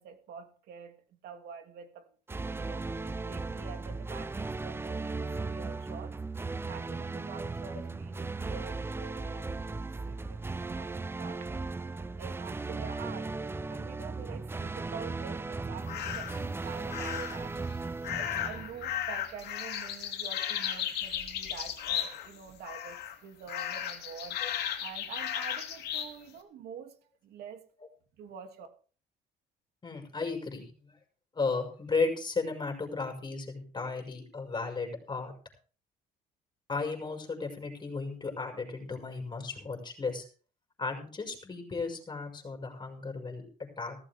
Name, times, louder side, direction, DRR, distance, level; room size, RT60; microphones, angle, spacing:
voice 1, 0.0-2.1 2.5-3.0 3.2-5.2 5.5-6.2 6.7-9.6 10.1-11.7 12.2-13.3 13.7-17.6 18.1-24.4 24.8-26.9 27.2-27.6 28.2-28.7, right 7 dB, 70° right, 5 dB, 2.9 m, -46 dB
sound 1, 2.3-19.3, right 3 dB, 15° right, 0.6 m, -37 dB
Crows and other birds, 15.9-16.4 16.9-17.5 18.0-22.4 22.6-23.2 23.5-26.1, left 10 dB, 70° left, 2.8 m, -35 dB
voice 2, 29.8-30.9 31.3-35.3 36.7-40.3 40.8-43.4 43.8-44.0, left 4 dB, 25° left, 3 dB, 6.0 m, -34 dB
16.0 x 14.0 x 3.7 m, 0.40 s
cardioid pair, 110°, 17 cm